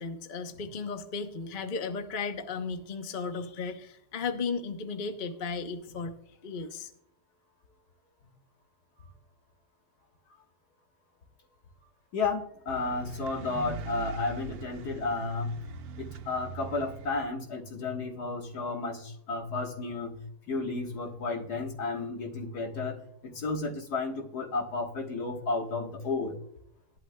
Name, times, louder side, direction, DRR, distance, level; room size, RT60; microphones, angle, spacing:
voice 1, 0.0-6.1 6.4-6.9, left 4 dB, 40° left, 6 dB, 0.8 m, -35 dB
voice 2, 12.1-15.6 16.0-26.4, left 3 dB, 65° left, 2 dB, 2.0 m, -33 dB
sound 1, 12.7-17.3, right 5 dB, 80° right, 1.3 m, -42 dB
18.0 x 11.5 x 2.2 m, 0.71 s
omnidirectional pair, 1.8 m